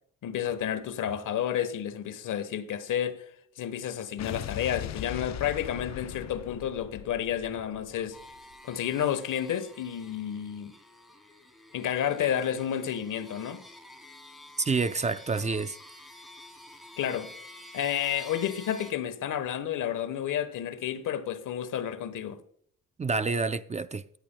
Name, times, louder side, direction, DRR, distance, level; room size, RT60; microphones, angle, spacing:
voice 1, 0.2-3.2 3.6-8.2 8.6-10.7 11.7-13.6 17.0-17.3 17.7-22.4, left 9 dB, 75° left, 1.2 m, -31 dB
Explosion, 4.2-8.5, left 11 dB, 60° left, 0.6 m, -40 dB
sound 1, 8.1-18.9, left 1 dB, ahead, 2.8 m, -50 dB
voice 2, 14.6-15.8 23.0-24.0, right 4 dB, 20° right, 0.5 m, -28 dB
14.0 x 10.5 x 2.2 m
cardioid pair, 85°, 31 cm